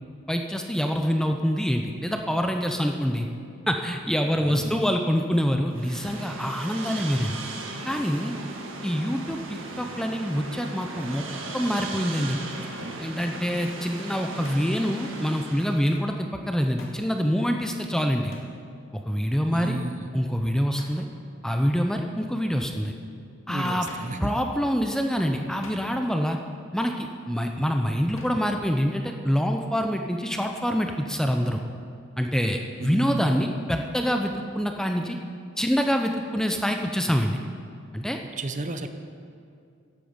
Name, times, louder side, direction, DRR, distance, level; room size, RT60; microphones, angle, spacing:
voice 1, 0.3-3.3 3.7-7.4 7.9-8.3 8.8-11.2 11.5-12.4 13.0-18.3 19.1-19.8 20.1-21.1 21.4-22.9 23.5-23.9 24.2-26.4 26.7-31.6 32.2-35.2 35.6-37.4 37.9-38.2, equal, 5° left, 4 dB, 0.5 m, -26 dB
voice 2, 4.4-4.9 19.5-20.1 23.5-24.4 32.8-33.5 38.4-38.9, right 2 dB, 35° right, 8 dB, 0.7 m, -32 dB
sound 1, 5.7-15.8, right 2 dB, 70° right, 1.7 m, -37 dB
Hands, 14.4-14.9 15.9-16.1 16.8-17.1 18.3-18.6 20.7-21.1 23.9-24.2 25.6-26.2 28.2-28.5, left 2 dB, 80° left, 2.2 m, -46 dB
15.0 x 11.5 x 5.2 m, 2.4 s
head